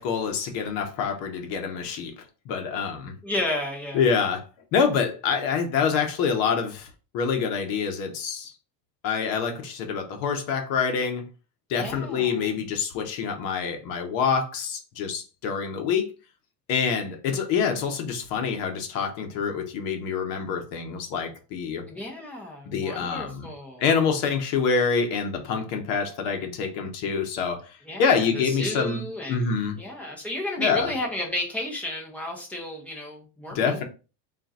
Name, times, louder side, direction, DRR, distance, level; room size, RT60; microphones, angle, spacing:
voice 1, 0.0-2.1 2.4-3.1 3.9-8.5 9.0-11.2 11.7-16.1 16.7-21.9 22.7-23.5 23.8-29.0 29.3-29.8 30.6-30.9 33.5-33.8, left 6 dB, 50° left, 1.0 m, -26 dB
voice 2, 3.2-4.1 11.8-12.4 21.9-23.8 27.8-33.8, left 1 dB, 5° left, 0.6 m, -32 dB
3.7 x 2.5 x 4.0 m
supercardioid pair, 155°, 50 cm